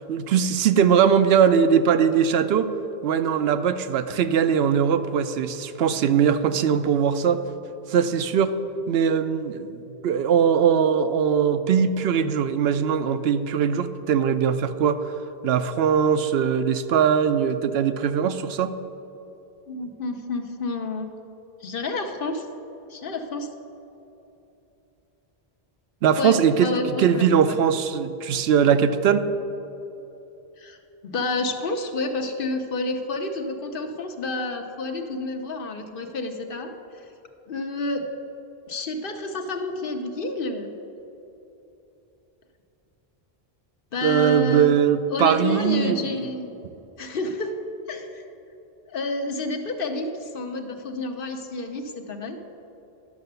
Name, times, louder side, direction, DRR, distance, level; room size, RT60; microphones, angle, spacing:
voice 1, 0.0-2.7 3.0-7.4 7.9-8.5 8.9-15.1 15.4-18.7 26.0-26.7 27.0-29.3 44.0-46.3, right 7 dB, 80° right, 10 dB, 0.8 m, -21 dB
voice 2, 19.7-21.1 21.6-22.5 22.9-23.5 26.2-27.6 30.6-30.8 31.0-37.0 37.5-38.1 38.7-40.7 43.9-44.7 45.1-46.5 47.0-47.6 47.9-48.2 48.9-52.4, left 2 dB, 65° left, 5 dB, 1.0 m, -29 dB
11.0 x 6.7 x 6.7 m, 3.0 s
omnidirectional pair, 1.0 m